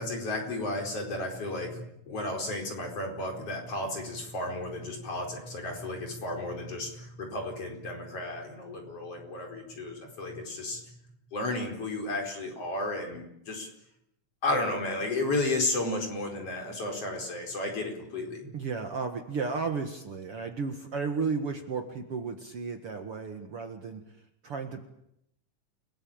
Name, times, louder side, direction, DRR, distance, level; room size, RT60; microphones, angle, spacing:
voice 1, 0.0-10.8 11.3-13.7 14.4-18.5, left 2 dB, 45° left, 3 dB, 5.5 m, -33 dB
voice 2, 18.5-24.0 24.4-24.8, right 5 dB, 50° right, 5 dB, 2.3 m, -33 dB
29.5 x 19.0 x 8.8 m, 0.81 s
omnidirectional pair, 3.9 m